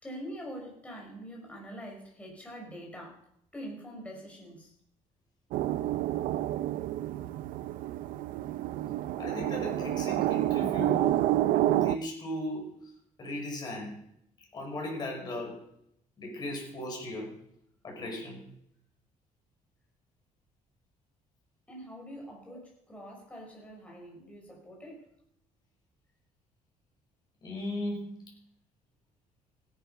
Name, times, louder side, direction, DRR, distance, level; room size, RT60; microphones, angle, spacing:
voice 1, 0.0-4.7 21.7-25.1, equal, 10° left, 0 dB, 5.4 m, -44 dB
sound 1, 5.5-12.0, right 14 dB, 90° right, 0.6 m, -29 dB
voice 2, 9.2-11.3 11.8-12.9 13.2-14.0 14.5-15.7 16.2-17.4 17.8-18.5 22.5-22.6 27.4-28.2, left 1 dB, 30° left, 0 dB, 6.2 m, -37 dB
16.5 x 10.5 x 5.8 m, 0.69 s
cardioid pair, 160°, 14 cm